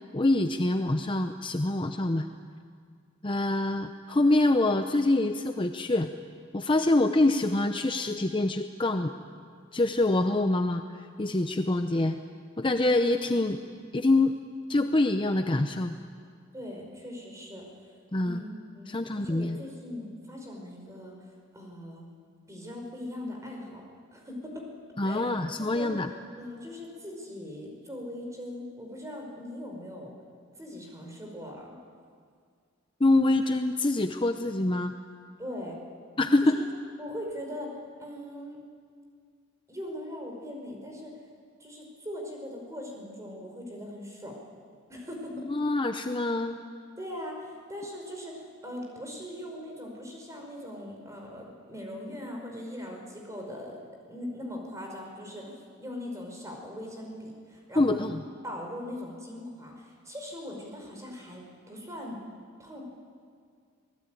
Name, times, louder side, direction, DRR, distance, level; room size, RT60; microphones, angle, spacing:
voice 1, 0.1-2.3 3.2-6.1 6.5-9.1 9.7-12.2 12.6-13.6 13.9-14.3 14.7-15.9 18.1-18.4 18.9-19.6 25.0-26.1 33.0-34.9 36.2-36.6 45.5-46.6 57.8-58.2, left 2 dB, 25° left, 7 dB, 0.7 m, -25 dB
voice 2, 16.5-17.7 18.2-18.5 18.7-21.1 21.5-22.1 22.5-23.8 24.1-24.6 25.0-25.3 25.7-25.9 26.4-30.1 30.6-31.7 35.4-35.8 36.4-36.5 37.0-38.6 39.7-41.1 41.6-44.3 44.9-45.4 47.0-53.8 54.1-58.1 58.4-62.2 62.6-62.8, left 1 dB, 15° right, 0 dB, 5.2 m, -40 dB
26.0 x 19.5 x 9.2 m, 2.1 s
head